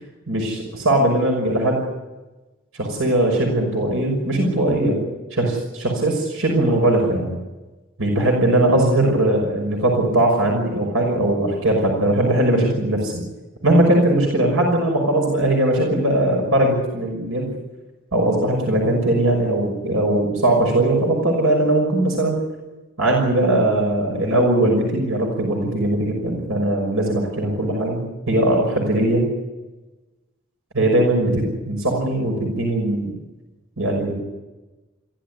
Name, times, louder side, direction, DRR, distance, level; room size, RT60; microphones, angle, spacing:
voice 1, 0.3-1.8 2.7-5.0 5.3-7.4 8.0-13.1 13.6-17.5 18.1-22.4 23.0-29.2 30.7-33.1 33.8-34.2, right 1 dB, 85° right, 1 dB, 6.0 m, -20 dB
23.5 x 16.0 x 9.9 m, 1.1 s
head